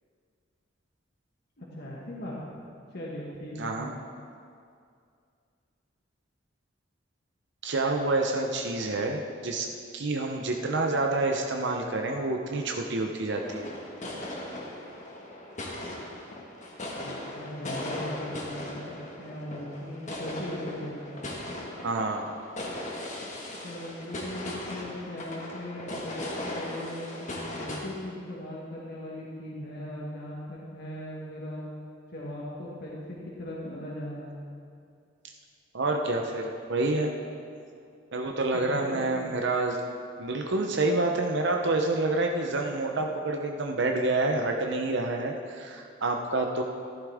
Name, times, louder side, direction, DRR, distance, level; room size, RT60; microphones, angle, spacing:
voice 1, 1.6-2.5 2.9-3.8 16.8-21.3 23.6-26.2 26.4-31.7 32.1-34.3 38.5-39.3, left 1 dB, 55° left, -5 dB, 1.7 m, -39 dB
voice 2, 3.6-4.0 7.6-9.7 9.9-13.7 21.8-22.4 35.7-37.1 38.1-39.9 40.2-46.6, right 2 dB, 65° right, 2 dB, 0.8 m, -28 dB
sound 1, 13.3-27.8, left 1 dB, 40° left, 1.6 m, -38 dB
14.5 x 11.5 x 3.6 m, 2.4 s
head